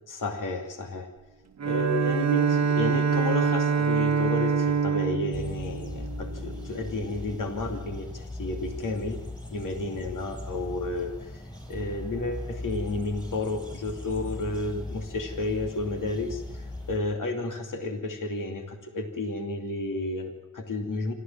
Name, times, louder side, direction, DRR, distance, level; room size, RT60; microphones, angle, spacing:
voice 1, 0.1-1.1 1.6-9.2 9.5-11.4 11.7-21.1, left 2 dB, 70° left, 4 dB, 2.7 m, -32 dB
Bowed string instrument, 1.6-6.7, right 6 dB, 55° right, 1.0 m, -25 dB
sound 1, 5.3-17.0, left 2 dB, 10° left, 6.7 m, -39 dB
26.0 x 13.5 x 7.3 m, 1.1 s
cardioid pair, 70°, 33 cm